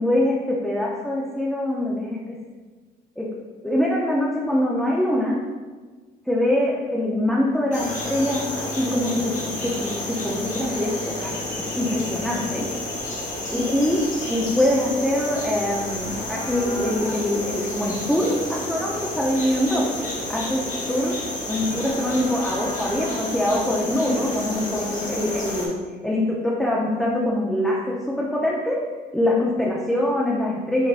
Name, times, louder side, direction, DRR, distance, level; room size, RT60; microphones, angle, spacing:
voice 1, 0.0-2.4 3.2-3.3 3.6-5.4 6.3-12.7 13.5-14.0 14.3-19.8 20.3-20.6 20.9-21.2 21.5-28.8 29.1-30.9, left 1 dB, ahead, -5 dB, 0.5 m, -24 dB
sound 1, 7.7-25.7, left 1 dB, 45° left, 1.1 m, -30 dB
5.3 x 3.0 x 2.4 m, 1.4 s
cardioid pair, 110°, 17 cm